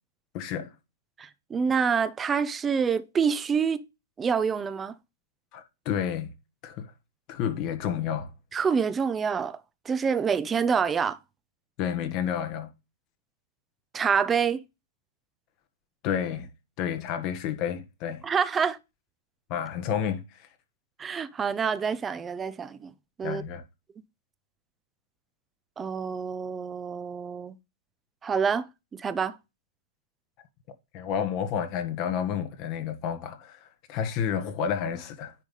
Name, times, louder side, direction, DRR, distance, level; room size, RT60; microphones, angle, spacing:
voice 1, 0.3-0.7 5.5-6.3 6.6-6.9 7.3-8.3 11.8-12.7 16.0-16.5 16.8-18.2 19.5-20.5 23.2-23.6 30.9-35.3, left 8 dB, 35° left, 1.5 m, -30 dB
voice 2, 1.2-3.8 4.2-5.0 8.5-11.2 13.9-14.6 18.2-18.8 21.0-22.9 23.2-23.4 25.8-27.6 28.2-29.4, right 6 dB, 15° right, 0.6 m, -27 dB
10.0 x 3.4 x 5.4 m
hypercardioid pair, 145°, 0 cm